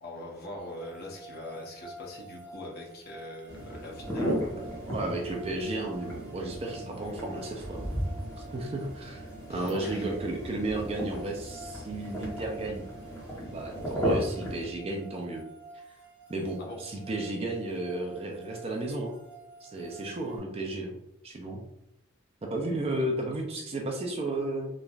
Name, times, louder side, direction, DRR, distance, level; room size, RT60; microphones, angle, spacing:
voice 1, 0.0-4.4 9.5-10.1 16.6-16.8, left 1 dB, 50° left, -1 dB, 0.7 m, -42 dB
sound 1, 0.6-20.4, right 2 dB, 10° right, 1.0 m, -50 dB
sound 2, 3.5-14.7, equal, 15° left, 0.9 m, -35 dB
voice 2, 4.9-7.9 8.5-9.2 9.5-12.8 13.5-15.4 16.3-19.2 19.6-21.0 21.2-21.6 22.4-24.7, right 2 dB, 30° right, 1 dB, 0.4 m, -33 dB
3.0 x 2.5 x 2.3 m, 0.82 s
head